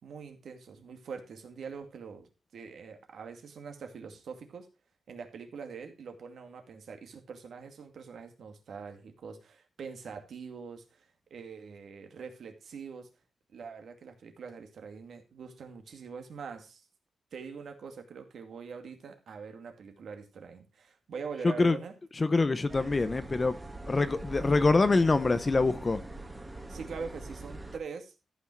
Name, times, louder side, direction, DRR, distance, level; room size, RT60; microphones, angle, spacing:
voice 1, 0.0-4.7 5.1-13.1 13.5-16.9 17.3-21.9 26.7-28.1, right 5 dB, 60° right, 2.2 m, -43 dB
voice 2, 21.4-21.8 22.2-23.6 23.9-26.0, left 3 dB, 25° left, 0.7 m, -25 dB
sound 1, 22.7-27.8, right 2 dB, 10° right, 1.6 m, -43 dB
14.0 x 6.2 x 4.5 m
wide cardioid pair, 165°, 0 cm